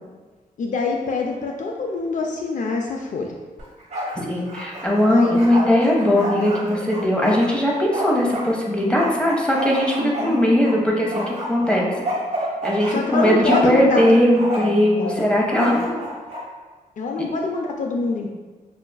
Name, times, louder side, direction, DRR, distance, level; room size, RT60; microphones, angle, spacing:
voice 1, 0.6-3.4 5.1-5.4 10.0-10.4 12.9-14.0 14.9-15.1 15.6-16.1 17.0-18.3, left 4 dB, 60° left, 1 dB, 0.4 m, -25 dB
Bark, 3.6-4.2 4.5-8.5 9.0-10.8 11.1-14.1 14.4-14.8 15.5-16.4, right 1 dB, 50° right, 1.0 m, -29 dB
voice 2, 4.3-11.9 12.6-15.8, left 1 dB, 5° left, -2 dB, 0.8 m, -19 dB
5.6 x 2.3 x 2.2 m, 1.3 s
cardioid pair, 75°, 15 cm